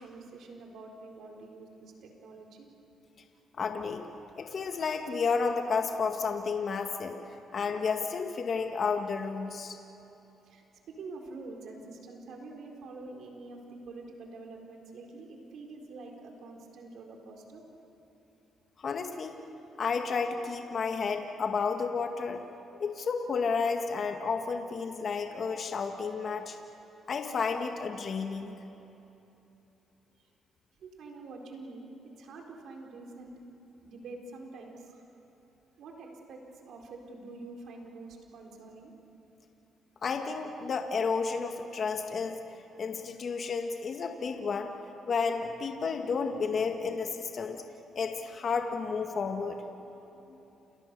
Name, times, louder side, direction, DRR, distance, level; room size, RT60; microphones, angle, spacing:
voice 1, 0.0-2.7 10.4-17.6 30.8-33.3 33.8-35.0 35.8-38.9, right 3 dB, 70° right, 1 dB, 4.3 m, -46 dB
voice 2, 3.6-4.1 4.4-7.2 7.5-9.8 18.8-19.3 19.8-22.4 22.8-26.6 27.1-28.6 40.0-42.4 42.8-44.7 45.1-47.6 48.0-49.6, left 5 dB, 50° left, 4 dB, 1.8 m, -31 dB
29.0 x 28.5 x 6.9 m, 3.0 s
cardioid pair, 90°, 0 cm